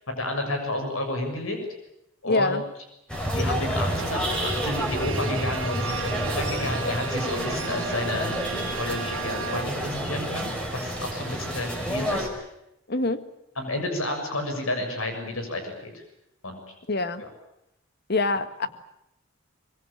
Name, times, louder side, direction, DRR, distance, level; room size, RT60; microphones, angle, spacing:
voice 1, 0.2-1.6 2.2-2.6 3.3-8.4 8.8-12.4 13.5-16.0 16.4-16.6 17.2-17.3, left 1 dB, 80° left, 5 dB, 6.9 m, -30 dB
voice 2, 2.2-2.6 12.9-13.2 16.9-17.2 18.1-18.7, left 3 dB, 50° left, 11 dB, 1.8 m, -25 dB
sound 1, 3.1-12.3, equal, 5° left, 5.3 m, -29 dB
Bowed string instrument, 3.9-10.0, right 7 dB, 65° right, 2.0 m, -36 dB
24.0 x 23.5 x 8.9 m, 0.84 s
head